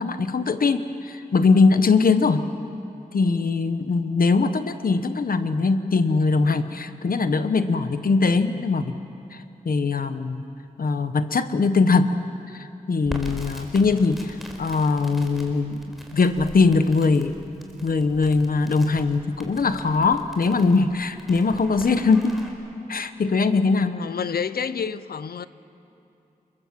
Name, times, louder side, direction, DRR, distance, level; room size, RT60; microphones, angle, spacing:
voice 1, 0.0-2.5 3.1-9.0 9.3-9.4 9.6-10.4 10.8-12.1 12.5-17.4 17.8-22.4 22.9-24.0, left 4 dB, 70° left, 1.1 m, -21 dB
Crackle, 13.0-22.5, equal, ahead, 4.1 m, -41 dB
voice 2, 23.9-25.5, left 6 dB, 90° left, 0.7 m, -29 dB
29.5 x 22.5 x 7.6 m
wide cardioid pair, 85°, 15 cm